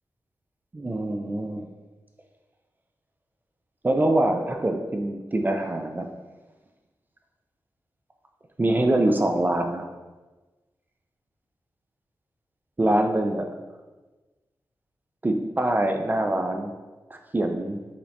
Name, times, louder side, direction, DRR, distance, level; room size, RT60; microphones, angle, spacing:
voice 1, 0.7-1.7 3.8-6.1 8.6-9.9 12.8-13.5 15.2-16.7 17.1-17.8, right 1 dB, 25° right, 4 dB, 0.4 m, -24 dB
5.5 x 2.7 x 3.2 m, 1.2 s
wide cardioid pair, 120°, 8 cm